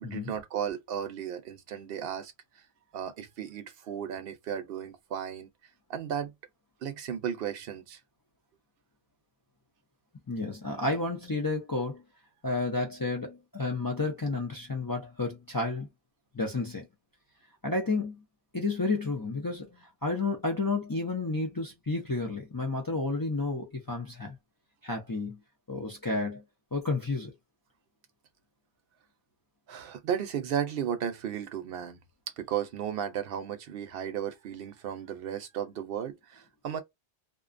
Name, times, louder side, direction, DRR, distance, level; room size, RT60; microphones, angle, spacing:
voice 1, 0.0-2.3 2.9-5.5 5.9-6.3 6.8-8.0 29.7-32.0 32.4-36.8, right 9 dB, 65° right, 0.8 m, -34 dB
voice 2, 10.3-12.0 12.4-15.9 16.3-16.9 17.6-18.2 18.5-24.4 24.8-25.4 25.7-26.4 26.7-27.3, left 3 dB, 30° left, 0.4 m, -31 dB
2.4 x 2.2 x 2.5 m
omnidirectional pair, 1.1 m